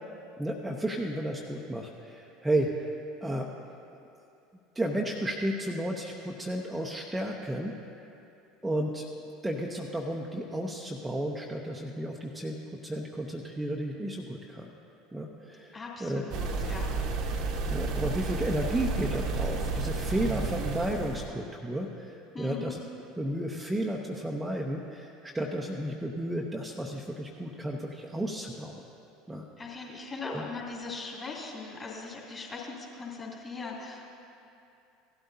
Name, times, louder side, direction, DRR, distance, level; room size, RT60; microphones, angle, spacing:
voice 1, 0.4-2.9 3.2-3.5 4.7-7.7 8.6-9.0 9.4-12.6 12.8-14.7 15.1-16.2 17.7-22.8 23.2-28.8 29.3-29.5 30.2-30.4, right 1 dB, 10° right, -1 dB, 0.8 m, -33 dB
voice 2, 15.7-16.8 22.3-22.8 29.6-34.1, left 4 dB, 25° left, -3 dB, 2.8 m, -40 dB
sound 1, 16.3-21.3, right 3 dB, 50° right, 1.1 m, -31 dB
17.0 x 12.5 x 2.8 m, 2.7 s
figure-of-eight pair, 70°, 0 cm